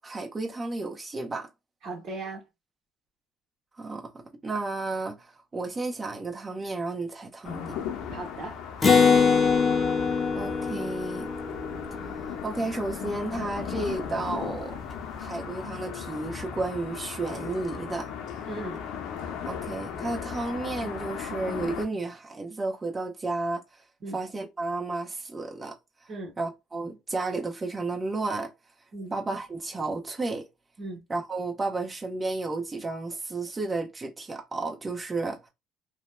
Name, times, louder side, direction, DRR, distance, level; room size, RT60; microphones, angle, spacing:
voice 1, 0.0-1.5 3.8-4.1 4.4-7.7 10.3-11.3 12.4-14.8 15.2-18.1 19.4-23.6 24.1-25.7 26.4-28.5 29.1-30.4 31.1-35.5, right 3 dB, 25° right, 1.0 m, -32 dB
voice 2, 1.8-2.5 8.1-8.5 18.5-18.8 24.0-24.2 26.1-26.3 28.9-29.1 30.8-31.0, right 2 dB, 55° right, 1.0 m, -37 dB
sound 1, 7.4-21.9, left 7 dB, 70° left, 0.7 m, -37 dB
Acoustic guitar, 8.8-12.5, left 5 dB, 30° left, 0.7 m, -23 dB
2.8 x 2.2 x 2.3 m
supercardioid pair, 70°, 0 cm